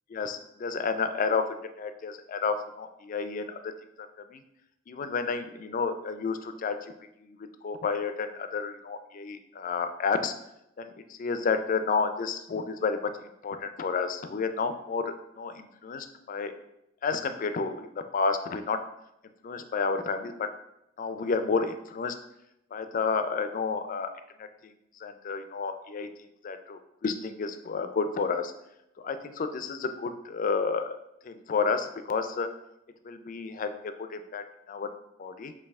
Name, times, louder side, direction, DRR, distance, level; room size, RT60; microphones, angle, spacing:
voice 1, 0.1-3.7 4.3-4.4 4.9-6.8 7.2-7.4 7.6-10.3 10.8-13.1 13.4-16.5 17.0-17.9 18.1-18.8 19.4-20.5 21.0-22.1 22.7-24.1 24.4-24.7 25.0-26.1 26.4-28.5 29.0-31.0 31.2-32.5 33.0-34.9 35.2-35.5, left 5 dB, 45° left, 9 dB, 0.4 m, -31 dB
5.3 x 2.6 x 3.5 m, 0.82 s
head